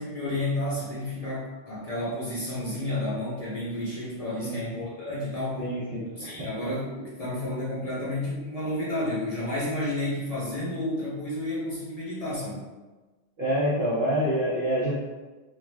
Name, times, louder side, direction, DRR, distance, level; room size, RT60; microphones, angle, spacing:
voice 1, 0.0-5.6 6.1-12.7, left 1 dB, 40° left, -8 dB, 0.7 m, -31 dB
voice 2, 5.6-6.5 13.4-14.9, equal, 60° right, -7 dB, 0.7 m, -27 dB
2.5 x 2.3 x 3.2 m, 1.2 s
omnidirectional pair, 1.2 m